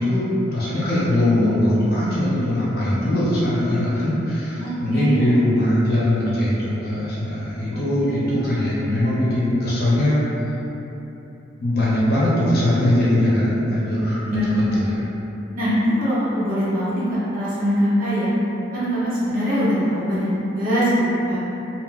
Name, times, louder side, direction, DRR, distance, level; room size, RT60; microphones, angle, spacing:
voice 1, 0.0-10.2 11.6-14.9, left 1 dB, 55° left, -9 dB, 0.8 m, -21 dB
voice 2, 4.6-5.2 8.0-8.1 14.2-14.8 15.5-17.0 17.3-18.3 18.7-20.3 20.5-20.9 21.3-21.4, equal, 45° right, -11 dB, 0.9 m, -22 dB
2.4 x 2.2 x 3.7 m, 3.0 s
head